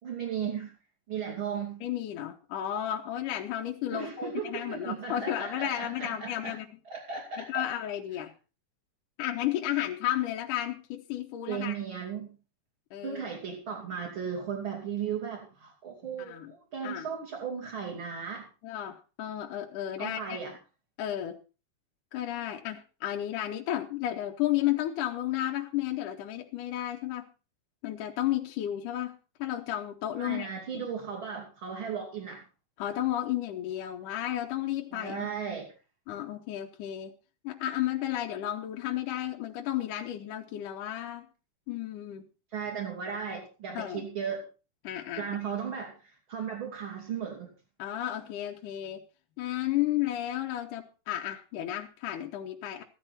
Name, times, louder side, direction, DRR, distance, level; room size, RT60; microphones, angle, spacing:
voice 1, 0.0-0.7 1.1-1.8 3.9-6.5 6.9-7.7 11.5-12.3 13.0-18.5 20.0-20.5 30.2-32.4 34.9-35.7 42.5-44.4 45.2-47.5, right 7 dB, 35° right, -2 dB, 3.2 m, -36 dB
voice 2, 1.8-6.7 7.4-8.3 9.2-11.8 12.9-13.2 16.3-16.5 16.8-17.1 18.6-20.4 21.0-21.4 22.1-27.2 27.8-30.5 30.7-30.8 32.8-35.3 36.1-37.1 37.4-41.3 41.7-42.2 43.8-44.0 44.8-45.3 47.8-49.0 49.4-52.8, left 12 dB, 70° left, 1 dB, 2.3 m, -33 dB
15.0 x 11.5 x 4.2 m, 0.33 s
omnidirectional pair, 4.3 m